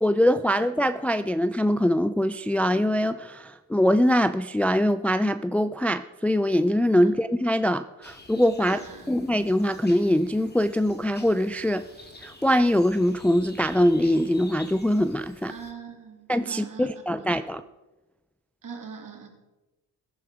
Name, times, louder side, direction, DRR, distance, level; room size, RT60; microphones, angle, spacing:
voice 1, 0.0-8.8 9.1-11.8 12.2-15.5 16.3-17.6, equal, 5° left, 11 dB, 0.4 m, -23 dB
sound 1, 8.0-15.7, left 2 dB, 25° left, 2.5 m, -49 dB
voice 2, 8.6-9.2 15.5-17.3 18.6-19.3, right 5 dB, 55° right, 4 dB, 2.9 m, -42 dB
15.0 x 10.5 x 4.9 m, 1.1 s
cardioid pair, 70°, 39 cm